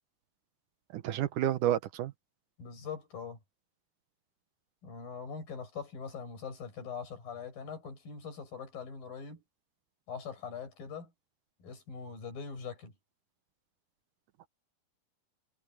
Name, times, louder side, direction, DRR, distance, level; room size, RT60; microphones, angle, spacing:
voice 1, 0.9-2.1, right 12 dB, 75° right, 2.3 m, -30 dB
voice 2, 2.6-3.4 4.8-9.4 10.1-11.1 11.6-12.9, left 6 dB, 85° left, 8.2 m, -42 dB
omnidirectional pair, 4.0 m